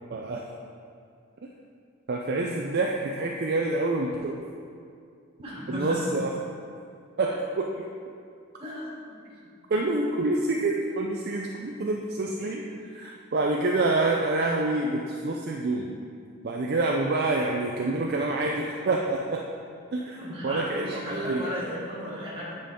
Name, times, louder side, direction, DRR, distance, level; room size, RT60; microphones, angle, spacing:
voice 1, 0.1-0.4 2.1-4.4 5.7-6.3 7.2-7.6 9.7-12.6 12.9-15.9 16.4-19.4 19.9-20.2 20.4-21.0 21.3-21.4, right 2 dB, 45° right, 0 dB, 0.4 m, -27 dB
voice 2, 5.4-6.0 7.3-7.4 8.6-9.2 20.1-22.6, equal, 25° right, -7 dB, 1.9 m, -35 dB
8.8 x 5.2 x 3.7 m, 2.3 s
head